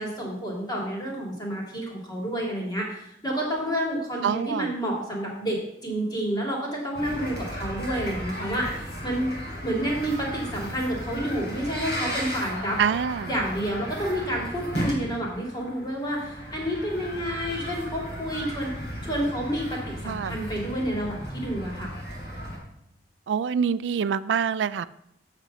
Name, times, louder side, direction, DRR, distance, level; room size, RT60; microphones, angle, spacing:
voice 1, 0.0-5.6 5.8-9.3 9.6-12.8 13.2-18.7 19.0-21.9, equal, 25° left, -2 dB, 2.7 m, -29 dB
voice 2, 4.2-4.7 12.8-13.3 20.0-20.4 23.3-24.8, right 7 dB, 85° right, 16 dB, 0.3 m, -25 dB
sound 1, 6.9-22.6, equal, 75° left, 3.6 m, -35 dB
8.2 x 6.1 x 5.4 m, 0.75 s
head